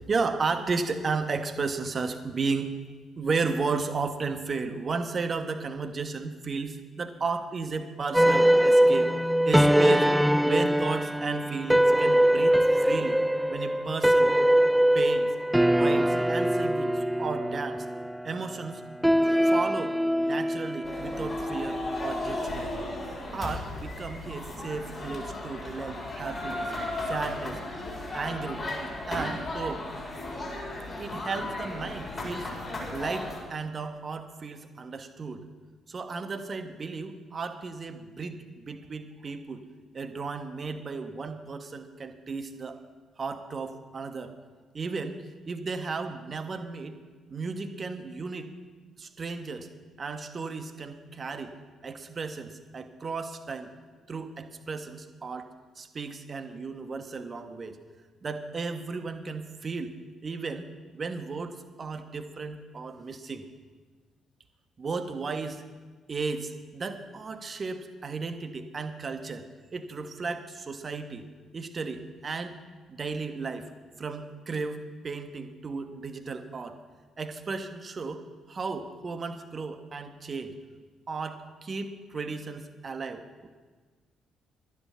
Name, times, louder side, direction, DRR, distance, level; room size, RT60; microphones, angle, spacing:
voice 1, 0.1-2.7 3.2-9.1 9.4-10.1 10.4-13.2 13.5-14.3 14.9-15.3 15.7-17.9 18.2-18.8 19.2-22.7 23.3-26.7 27.1-27.6 28.1-28.6 29.1-29.9 31.0-32.6 32.9-35.5 35.9-39.6 39.9-42.8 43.2-44.3 44.7-47.0 47.3-48.5 49.0-49.7 50.0-51.5 51.8-53.7 54.1-55.5 55.8-57.8 58.2-59.9 60.2-60.7 60.9-63.4 64.8-65.6 66.1-69.5 69.7-71.3 71.5-72.6 72.9-73.7 74.0-76.8 77.2-78.2 78.5-80.5 81.1-83.5, right 4 dB, 35° right, 8 dB, 1.1 m, -34 dB
sound 1, 8.1-22.7, equal, 5° right, 0.4 m, -23 dB
sound 2, 20.8-33.4, left 2 dB, 35° left, 4.3 m, -35 dB
12.5 x 9.8 x 5.8 m, 1.5 s
figure-of-eight pair, 45°, 0 cm